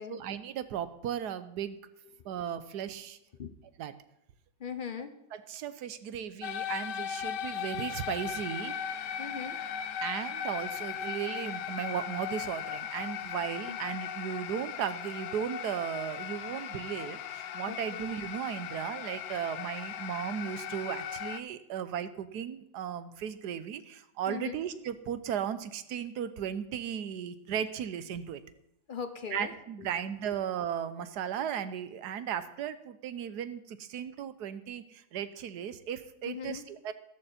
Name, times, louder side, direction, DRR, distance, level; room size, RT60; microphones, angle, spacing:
voice 1, 0.1-1.8 2.2-3.2 3.8-3.9 5.3-8.8 10.0-28.4 29.3-36.9, right 9 dB, 65° right, 12 dB, 1.3 m, -36 dB
voice 2, 4.6-5.1 9.2-9.6 13.7-13.8 17.7-17.8 24.3-24.6 28.9-29.5 29.8-29.9 36.2-36.6, left 6 dB, 45° left, 9 dB, 0.6 m, -39 dB
sound 1, 6.4-21.4, left 9 dB, 70° left, 1.3 m, -38 dB
13.5 x 13.5 x 4.3 m, 0.82 s
omnidirectional pair, 2.0 m